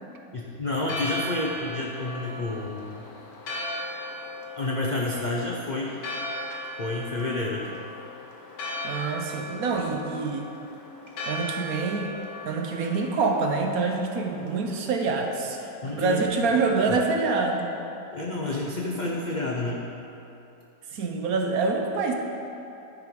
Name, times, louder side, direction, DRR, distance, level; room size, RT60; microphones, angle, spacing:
voice 1, 0.3-3.0 4.6-6.0 6.8-7.8 12.8-12.9 15.6-16.2 16.5-16.6 18.1-19.9, left 2 dB, 70° left, -3 dB, 0.4 m, -30 dB
Church bell, 0.7-14.8, left 1 dB, 85° left, 1.7 m, -37 dB
voice 2, 8.8-10.5 11.3-12.1 12.5-15.6 15.8-17.7 20.9-22.1, right 4 dB, 65° right, 2 dB, 1.1 m, -26 dB
10.5 x 4.7 x 5.2 m, 2.9 s
omnidirectional pair, 1.8 m